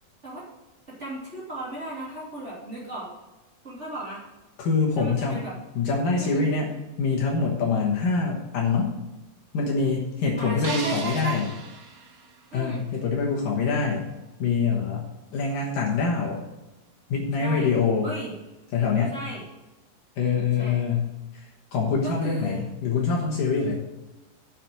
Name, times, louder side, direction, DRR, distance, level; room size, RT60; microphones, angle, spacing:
voice 1, 0.9-3.1 3.6-4.2 5.0-5.5 6.2-6.5 10.4-11.4 12.5-12.8 17.4-17.7 18.0-18.3 19.1-19.4 20.6-20.8 22.0-22.6, right 1 dB, 20° right, -7 dB, 2.6 m, -35 dB
voice 2, 4.6-5.4 5.8-6.7 7.0-8.9 9.5-11.5 12.5-14.1 14.4-15.0 15.3-16.4 17.1-18.1 18.7-19.1 20.2-21.1 21.3-23.8, left 4 dB, 70° left, -2 dB, 2.8 m, -25 dB
sound 1, 10.6-12.9, right 4 dB, 50° right, 1.7 m, -38 dB
7.5 x 6.8 x 7.5 m, 1.1 s
omnidirectional pair, 4.2 m